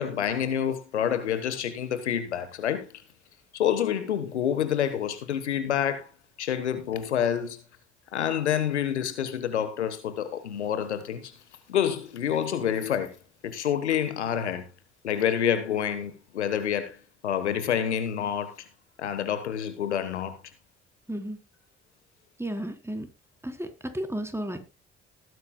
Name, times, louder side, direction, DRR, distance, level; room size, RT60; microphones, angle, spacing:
voice 1, 0.0-3.0 3.5-6.1 6.4-7.6 8.1-11.3 11.7-13.1 13.4-14.6 15.0-17.0 17.2-18.7 19.0-20.4, left 9 dB, 90° left, 1.3 m, -28 dB
voice 2, 21.1-21.4 22.4-23.1 23.4-24.6, right 1 dB, 10° right, 3.9 m, -33 dB
19.5 x 9.5 x 2.3 m
hypercardioid pair, 45°, 33 cm